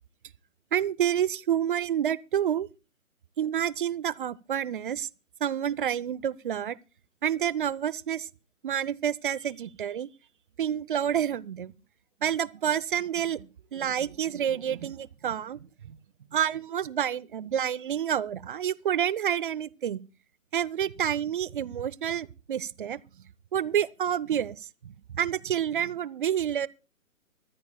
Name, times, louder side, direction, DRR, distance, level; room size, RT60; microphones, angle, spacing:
voice 1, 0.7-2.7 3.4-5.1 5.4-6.8 7.2-8.3 8.6-10.1 10.6-11.7 12.2-16.0 16.3-20.0 20.5-23.0 23.5-24.6 24.8-26.7, right 9 dB, 40° right, 0.5 m, -29 dB
24.5 x 14.0 x 2.3 m
figure-of-eight pair, 140°, 41 cm